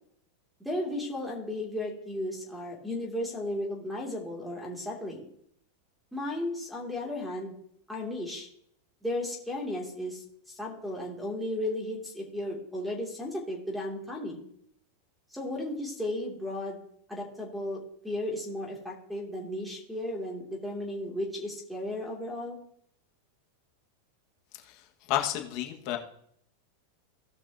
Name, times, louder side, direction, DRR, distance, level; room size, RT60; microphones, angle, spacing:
voice 1, 0.6-5.3 6.1-7.5 7.9-8.5 9.0-10.2 10.5-14.4 15.3-16.8 17.1-22.6, left 1 dB, ahead, 0 dB, 2.7 m, -34 dB
voice 2, 25.1-26.0, left 12 dB, 50° left, 2 dB, 1.7 m, -30 dB
17.5 x 6.0 x 2.9 m, 0.68 s
supercardioid pair, 130°, 0 cm